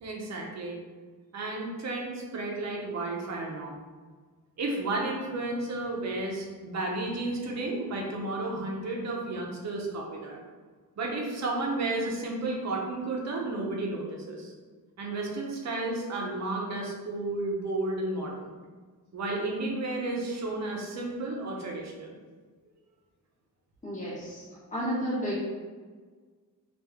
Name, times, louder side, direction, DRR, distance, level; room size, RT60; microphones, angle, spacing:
voice 1, 0.0-0.8 1.3-3.8 4.6-10.4 11.0-14.5 15.0-18.5 19.1-22.2, right 2 dB, 50° right, -1 dB, 0.7 m, -32 dB
voice 2, 23.8-25.4, equal, 20° left, -9 dB, 1.4 m, -32 dB
3.0 x 2.5 x 3.5 m, 1.5 s
wide cardioid pair, 145°, 36 cm